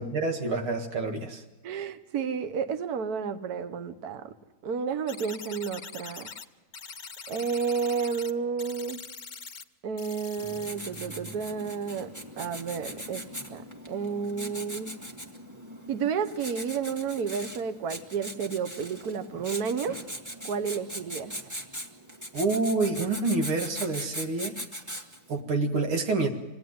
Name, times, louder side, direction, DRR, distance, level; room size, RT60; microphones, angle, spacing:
voice 1, 0.0-1.4 22.3-24.5 25.3-26.3, right 3 dB, 80° right, 4 dB, 2.6 m, -27 dB
voice 2, 1.6-4.4 4.6-6.3 7.3-9.0 9.8-12.1 12.4-13.2 13.5-15.0 15.9-20.0 20.4-21.3, right 6 dB, 55° right, 10 dB, 1.5 m, -31 dB
sound 1, 5.1-6.4 6.7-8.3 8.6-9.6 10.0-10.7 10.9-11.0, left 5 dB, 75° left, 0.4 m, -43 dB
Writing, 10.4-25.3, equal, 10° right, 1.7 m, -40 dB
26.5 x 18.0 x 9.5 m, 1.2 s
omnidirectional pair, 2.3 m